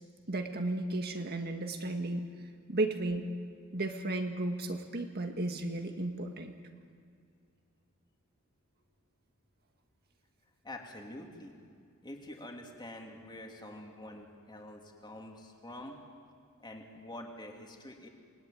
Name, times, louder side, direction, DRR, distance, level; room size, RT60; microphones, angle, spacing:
voice 1, 0.3-2.3 2.7-3.3 3.7-6.5, right 2 dB, 50° right, 4 dB, 1.9 m, -34 dB
voice 2, 10.6-11.5 12.0-16.0 16.6-18.1, left 1 dB, 20° left, 1 dB, 3.3 m, -46 dB
28.0 x 20.5 x 9.4 m, 2.3 s
head